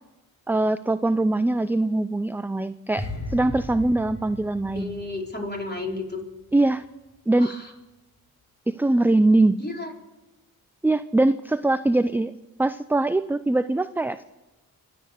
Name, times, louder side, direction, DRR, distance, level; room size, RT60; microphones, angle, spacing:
voice 1, 0.5-4.9 6.5-6.9 7.3-7.6 8.7-9.6 10.8-12.3 12.6-14.2, right 2 dB, 5° right, 13 dB, 0.4 m, -22 dB
sound 1, 3.0-6.2 6.4-6.7, left 2 dB, 40° left, 5.4 m, -37 dB
voice 2, 4.7-6.2 7.4-7.6 9.6-9.9, left 2 dB, 25° left, 0 dB, 4.2 m, -32 dB
24.0 x 8.8 x 6.6 m, 1.1 s
cardioid pair, 55°, 38 cm